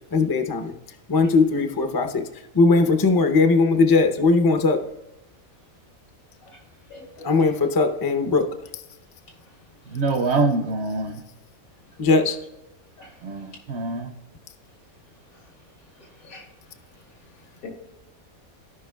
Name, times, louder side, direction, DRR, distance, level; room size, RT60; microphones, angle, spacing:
voice 1, 0.1-0.7 1.1-2.2 2.5-4.8 7.2-8.5 12.0-12.4, left 3 dB, 35° left, 0.3 m, -19 dB
voice 2, 6.9-7.3 13.0-13.1 16.2-16.4 17.6-17.7, left 3 dB, 85° left, 2.4 m, -42 dB
voice 3, 9.9-11.2 13.2-14.1, right 3 dB, 60° right, 0.8 m, -25 dB
15.5 x 5.4 x 2.2 m
omnidirectional pair, 1.5 m